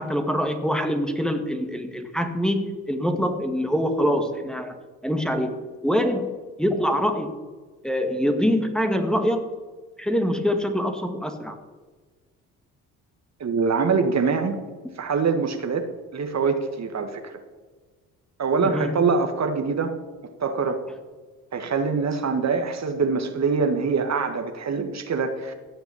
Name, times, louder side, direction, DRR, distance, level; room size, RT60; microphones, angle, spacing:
voice 1, 0.0-4.8 5.0-5.5 5.8-6.3 6.6-7.3 7.8-9.5 10.0-11.6 18.6-19.0, equal, ahead, 5 dB, 1.8 m, -24 dB
voice 2, 13.4-14.6 15.0-15.9 16.1-17.3 18.4-19.9 20.4-20.8 21.5-25.5, right 5 dB, 45° right, 7 dB, 1.7 m, -24 dB
16.0 x 5.9 x 8.4 m, 1.4 s
supercardioid pair, 60°, 36 cm